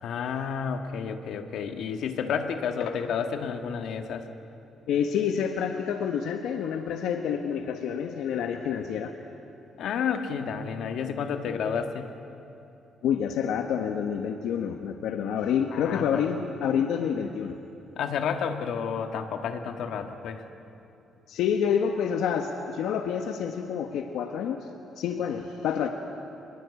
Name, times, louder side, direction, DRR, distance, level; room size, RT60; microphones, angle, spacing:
voice 1, 0.0-4.2 9.8-12.1 15.7-16.2 18.0-20.4, left 6 dB, 65° left, 6 dB, 1.6 m, -31 dB
voice 2, 4.9-9.1 13.0-17.6 21.3-24.7 25.0-25.9, left 8 dB, 80° left, 5 dB, 1.2 m, -28 dB
24.5 x 21.5 x 8.3 m, 2.7 s
cardioid pair, 175°, 0 cm